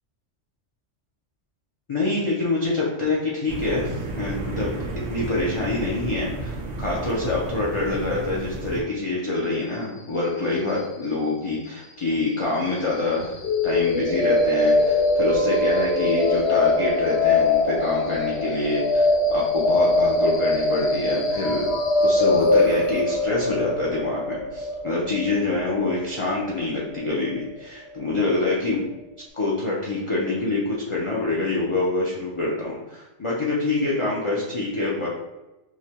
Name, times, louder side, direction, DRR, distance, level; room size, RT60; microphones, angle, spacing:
voice 1, 1.9-13.4 13.6-21.7 22.0-28.8 29.3-35.1, left 2 dB, 40° left, -5 dB, 0.5 m, -26 dB
Wind blowing through trees, 3.5-8.8, right 2 dB, 90° right, 1.0 m, -32 dB
sound 1, 13.4-27.4, left 2 dB, 65° left, 0.8 m, -22 dB
4.8 x 2.2 x 2.8 m, 1.0 s
omnidirectional pair, 1.2 m